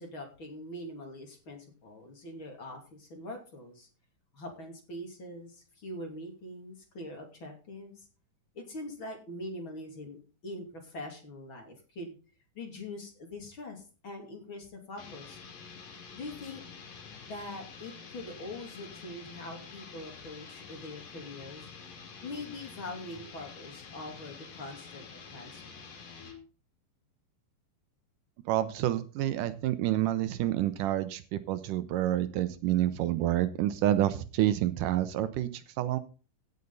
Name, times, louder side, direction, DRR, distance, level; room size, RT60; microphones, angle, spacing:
voice 1, 0.0-3.9 4.3-8.1 8.5-12.2 12.5-15.4 16.1-16.6 17.3-21.7 22.2-25.7, left 1 dB, 40° left, 2 dB, 3.3 m, -43 dB
sound 1, 15.0-26.4, left 5 dB, 65° left, 4.0 m, -48 dB
voice 2, 28.5-36.0, right 13 dB, 75° right, 13 dB, 2.2 m, -28 dB
16.5 x 6.7 x 4.0 m, 0.35 s
omnidirectional pair, 3.9 m